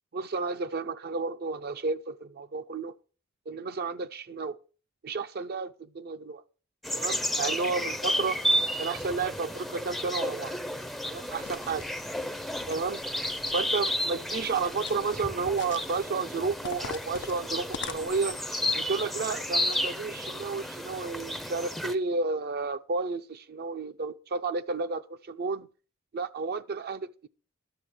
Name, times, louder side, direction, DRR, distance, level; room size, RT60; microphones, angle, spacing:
voice 1, 0.1-2.9 3.5-4.6 5.0-6.4 6.9-8.4 8.8-10.6 11.0-11.9 12.7-13.0 13.5-18.4 18.7-25.7 26.1-27.3, right 4 dB, 50° right, 0.5 m, -32 dB
sound 1, 6.8-21.9, equal, ahead, 0.5 m, -32 dB
sound 2, 11.3-12.0 12.5-13.6 14.3-15.2 15.5-16.1 16.6-18.4, left 8 dB, 60° left, 0.4 m, -44 dB
11.5 x 7.1 x 6.2 m
head